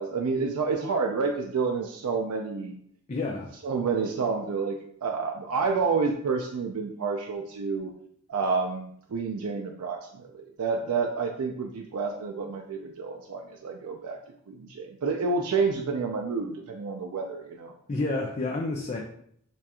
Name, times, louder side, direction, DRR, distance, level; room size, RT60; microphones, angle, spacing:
voice 1, 0.0-2.8 3.6-7.9 8.3-14.2 14.5-17.7, right 4 dB, 85° right, 2 dB, 0.4 m, -29 dB
voice 2, 3.1-3.5 17.9-19.0, left 2 dB, 30° left, 0 dB, 0.4 m, -29 dB
6.8 x 2.4 x 2.9 m, 0.67 s
head